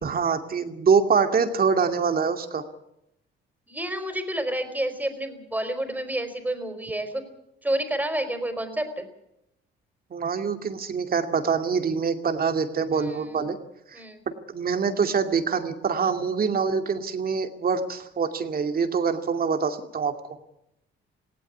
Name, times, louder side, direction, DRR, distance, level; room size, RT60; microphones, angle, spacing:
voice 1, 0.0-2.6 10.1-13.6 13.9-14.0 14.5-20.1, right 5 dB, 50° right, 7 dB, 2.5 m, -25 dB
voice 2, 3.7-7.2 7.6-9.0 12.9-13.3 13.9-14.2, right 1 dB, 10° right, 8 dB, 4.4 m, -29 dB
19.0 x 17.0 x 9.8 m, 0.82 s
cardioid pair, 90°, 20 cm